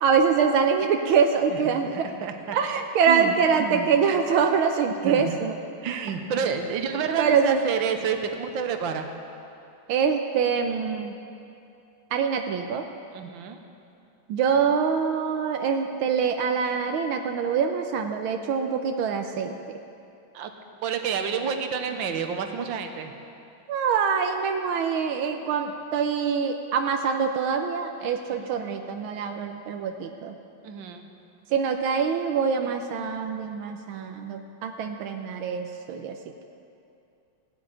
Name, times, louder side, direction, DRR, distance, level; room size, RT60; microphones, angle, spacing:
voice 1, 0.0-2.1 2.5-5.5 7.2-7.6 9.9-11.2 12.1-12.8 14.3-19.8 23.7-30.4 31.5-36.2, right 6 dB, 85° right, 4 dB, 1.6 m, -24 dB
voice 2, 2.0-2.6 3.1-3.3 3.6-3.9 5.0-5.3 5.8-9.1 13.1-13.6 20.3-20.5 20.8-23.1 28.3-28.5 30.6-31.1, right 6 dB, 70° right, 6 dB, 1.7 m, -29 dB
16.5 x 8.8 x 9.1 m, 2.7 s
omnidirectional pair, 2.3 m